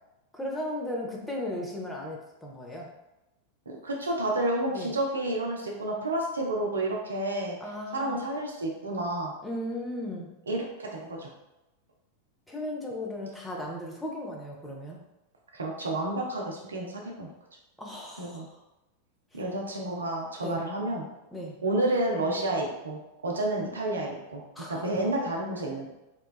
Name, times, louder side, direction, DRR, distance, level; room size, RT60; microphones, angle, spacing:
voice 1, 0.3-2.9 4.7-4.9 7.6-8.2 9.4-10.3 12.5-15.0 17.8-18.4 19.3-19.4 20.4-20.6 21.3-21.5 24.5-24.9, left 1 dB, 5° left, -2 dB, 0.5 m, -36 dB
voice 2, 3.8-7.6 7.9-9.3 10.5-11.3 15.5-17.3 18.2-18.5 19.3-21.1 21.6-24.4 24.7-25.9, right 1 dB, 75° right, -1 dB, 0.5 m, -30 dB
2.9 x 2.2 x 2.3 m, 0.95 s
figure-of-eight pair, 90°, 0 cm